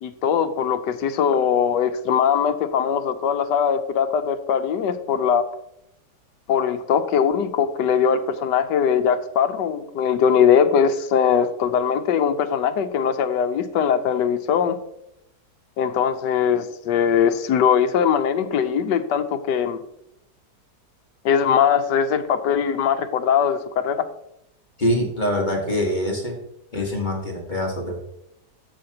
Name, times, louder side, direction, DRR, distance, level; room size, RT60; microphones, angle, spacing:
voice 1, 0.0-5.4 6.5-14.8 15.8-19.8 21.2-24.1 26.7-26.9, left 7 dB, 80° left, 10 dB, 1.3 m, -21 dB
voice 2, 24.8-26.4 26.7-28.0, left 1 dB, 30° left, 0 dB, 1.5 m, -24 dB
14.0 x 5.9 x 2.8 m, 0.80 s
omnidirectional pair, 1.9 m